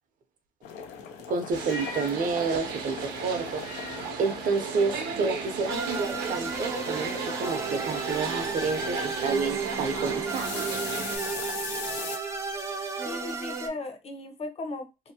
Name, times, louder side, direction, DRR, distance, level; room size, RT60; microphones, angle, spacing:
sound 1, 0.6-12.2, left 6 dB, 85° left, 0.6 m, -40 dB
voice 1, 1.3-3.6 4.2-10.5, right 4 dB, 50° right, 6 dB, 0.7 m, -29 dB
sound 2, 1.5-11.2, right 6 dB, 85° right, 0.8 m, -35 dB
sound 3, 5.7-13.7, right 4 dB, 15° right, 0.5 m, -33 dB
voice 2, 13.0-15.1, left 2 dB, 35° left, 5 dB, 0.8 m, -37 dB
2.8 x 2.1 x 2.7 m, 0.24 s
cardioid pair, 110°, 17 cm